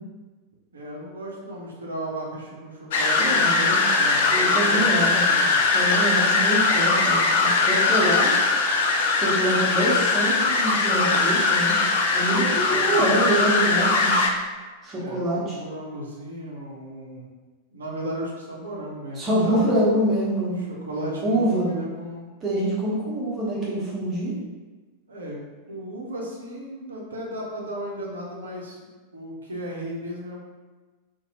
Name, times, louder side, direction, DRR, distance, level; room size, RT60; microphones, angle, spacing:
voice 1, 0.7-5.7 12.5-13.4 14.9-17.3 17.7-19.6 20.5-22.3 25.1-25.4 25.7-30.4, equal, 70° right, -3 dB, 0.6 m, -35 dB
sound 1, 2.9-14.3, left 3 dB, 55° left, 0.3 m, -21 dB
voice 2, 3.2-3.8 4.2-5.2 5.7-8.5 9.1-11.8 12.1-14.2 14.8-15.6 19.2-20.6 21.2-21.6 22.4-24.3, right 1 dB, 25° right, -7 dB, 1.0 m, -25 dB
2.5 x 2.2 x 2.8 m, 1.3 s
figure-of-eight pair, 90°, 0 cm